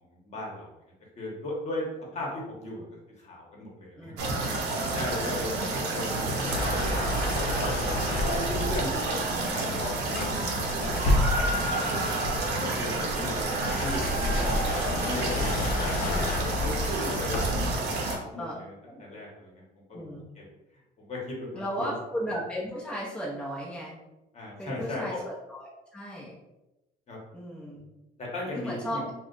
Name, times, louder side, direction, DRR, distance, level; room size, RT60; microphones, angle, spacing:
voice 1, 0.1-0.7 1.2-1.9 2.1-2.8 3.2-4.1 4.5-6.9 7.7-10.9 11.5-12.1 12.6-13.4 13.8-14.6 15.0-15.3 16.4-18.7 19.0-19.5 19.9-20.0 20.4-20.5 21.0-22.0 24.3-25.2 27.1-27.2 28.2-29.0, left 1 dB, 40° left, -2 dB, 1.0 m, -37 dB
voice 2, 4.0-5.0 6.3-6.7 12.9-13.5 18.4-18.5 18.9-19.0 19.9-20.3 21.5-24.0 24.6-26.3 27.3-27.9 28.5-29.1, equal, 5° left, -5 dB, 0.7 m, -36 dB
sound 1, 4.2-18.2, right 2 dB, 85° right, 0.7 m, -29 dB
sound 2, 6.5-9.0 10.2-11.7 12.2-17.8, left 2 dB, 60° left, 0.6 m, -30 dB
2.4 x 2.2 x 3.8 m, 0.97 s
cardioid pair, 110°, 17 cm